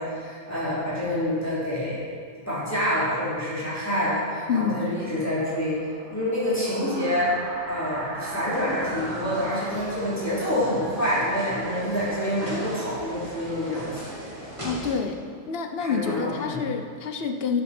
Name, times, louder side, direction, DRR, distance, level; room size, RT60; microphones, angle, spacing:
voice 1, 0.0-2.0 2.5-5.8 6.1-7.3 7.7-14.1 15.8-16.7, equal, 10° left, -10 dB, 3.3 m, -27 dB
sound 1, 4.1-12.4, right 2 dB, 80° right, 1.9 m, -40 dB
voice 2, 4.5-4.8 14.6-15.2 15.5-17.6, left 6 dB, 50° left, 5 dB, 1.0 m, -27 dB
sound 2, 8.5-14.9, equal, 25° right, 2.8 m, -39 dB
13.0 x 9.0 x 4.4 m, 2.1 s
omnidirectional pair, 1.4 m